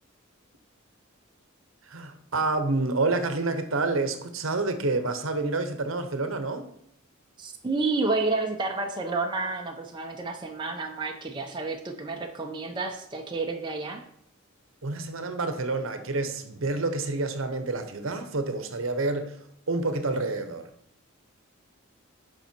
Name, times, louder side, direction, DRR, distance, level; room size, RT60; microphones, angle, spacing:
voice 1, 1.9-6.7 14.8-19.4 19.7-20.7, right 3 dB, 65° right, 8 dB, 0.9 m, -28 dB
voice 2, 7.4-14.0, right 3 dB, 20° right, 1 dB, 0.7 m, -30 dB
8.6 x 5.4 x 4.5 m, 0.70 s
head